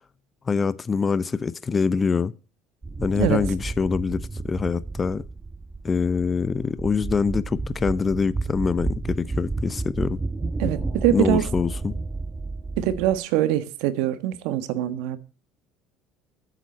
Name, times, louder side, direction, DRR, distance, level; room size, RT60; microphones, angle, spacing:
voice 1, 0.5-2.3 3.0-5.3 5.8-10.2 11.1-12.0, left 5 dB, 30° left, 0.7 m, -24 dB
sound 1, 2.8-13.2, right 3 dB, 20° right, 1.7 m, -31 dB
voice 2, 3.1-3.5 10.6-11.5 12.8-15.2, right 12 dB, 75° right, 1.3 m, -23 dB
9.3 x 7.4 x 8.4 m
hypercardioid pair, 75°, 0 cm